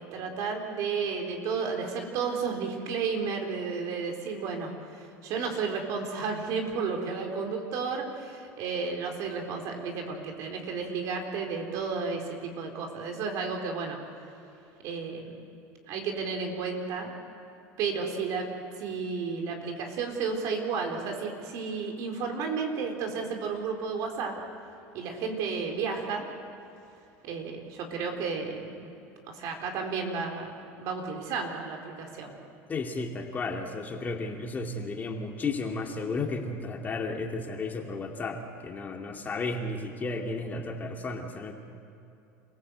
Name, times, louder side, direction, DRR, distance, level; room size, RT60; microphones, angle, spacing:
voice 1, 0.0-4.7 5.2-14.0 14.8-15.4 15.9-17.1 17.8-24.4 24.9-26.2 27.2-28.9 29.3-32.3, right 5 dB, 60° right, 3 dB, 4.1 m, -32 dB
voice 2, 32.7-41.5, left 3 dB, 25° left, 2 dB, 2.5 m, -33 dB
28.0 x 16.5 x 8.1 m, 2.8 s
supercardioid pair, 110°, 7 cm